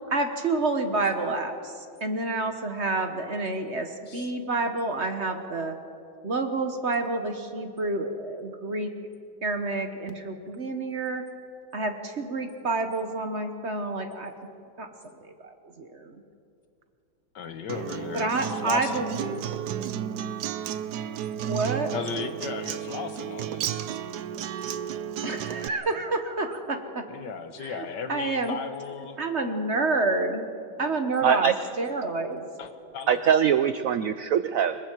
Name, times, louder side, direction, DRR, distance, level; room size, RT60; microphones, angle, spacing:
voice 1, 0.1-5.8 6.2-8.9 9.4-11.2 11.7-14.3 14.8-14.9 15.2-16.2 18.1-19.5 21.5-21.9 25.2-27.0 27.6-28.6 29.2-30.5 30.8-32.5, right 3 dB, 40° right, 6 dB, 1.2 m, -29 dB
voice 2, 17.3-19.0 21.9-23.9 27.1-29.2 32.6-33.2, left 6 dB, 65° left, 8 dB, 1.8 m, -35 dB
Acoustic guitar, 17.7-25.7, right 10 dB, 65° right, 1.1 m, -33 dB
voice 3, 31.2-31.5 33.1-34.8, right 8 dB, 80° right, 12 dB, 0.7 m, -22 dB
25.5 x 22.0 x 4.6 m, 2.5 s
omnidirectional pair, 2.1 m